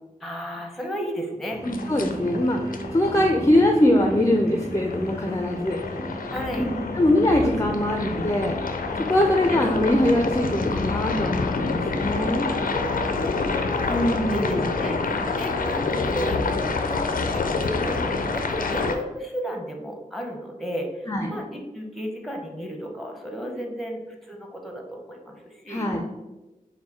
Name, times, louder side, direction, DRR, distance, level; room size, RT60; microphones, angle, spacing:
voice 1, 0.2-1.6 6.3-6.7 7.3-7.5 7.9-8.1 9.1-9.4 12.5-17.0 17.3-25.9, equal, ahead, 1 dB, 0.9 m, -34 dB
sound 1, 1.5-18.5, equal, 20° right, 1.2 m, -37 dB
sound 2, 1.6-18.9, left 4 dB, 80° left, 0.4 m, -28 dB
voice 2, 1.6-2.6 2.9-5.8 6.5-8.6 9.1-12.5 13.9-14.6 21.1-21.3 25.7-26.0, left 1 dB, 20° left, 2 dB, 0.5 m, -22 dB
4.6 x 2.2 x 4.2 m, 1.1 s
wide cardioid pair, 50°, 14 cm